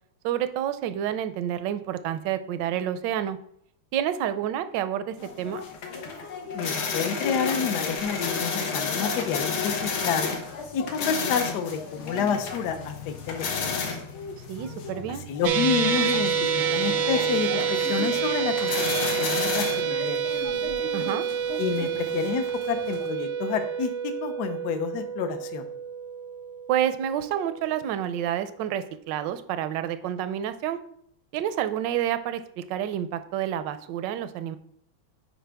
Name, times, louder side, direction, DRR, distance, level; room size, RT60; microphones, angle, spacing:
voice 1, 0.2-3.4 3.9-5.6 14.5-15.2 20.9-21.2 26.7-30.8 31.3-34.6, right 10 dB, 75° right, 12 dB, 1.1 m, -29 dB
sound 1, 5.2-23.1, left 5 dB, 85° left, 1.9 m, -32 dB
voice 2, 6.5-10.4 10.7-13.8 15.3-20.4 21.6-23.9 24.2-25.6, left 7 dB, 65° left, 7 dB, 1.1 m, -29 dB
sound 2, 15.4-27.8, right 7 dB, 90° right, 1.4 m, -28 dB
sound 3, 16.3-19.1, right 3 dB, 50° right, 0.6 m, -42 dB
8.8 x 5.0 x 3.4 m, 0.71 s
omnidirectional pair, 2.2 m